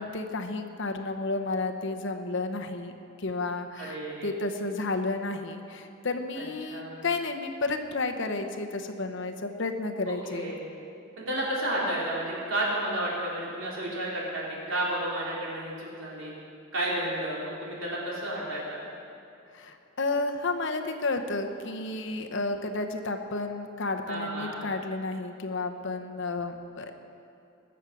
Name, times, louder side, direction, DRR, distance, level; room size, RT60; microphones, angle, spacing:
voice 1, 0.0-2.9 3.2-10.5 19.5-26.9, left 3 dB, 60° left, 5 dB, 0.9 m, -32 dB
voice 2, 3.8-4.3 6.4-6.5 6.7-7.1 10.1-10.6 11.2-16.3 16.7-18.8 24.1-24.6, right 1 dB, 65° right, -5 dB, 4.0 m, -32 dB
21.0 x 7.3 x 6.2 m, 2.7 s
head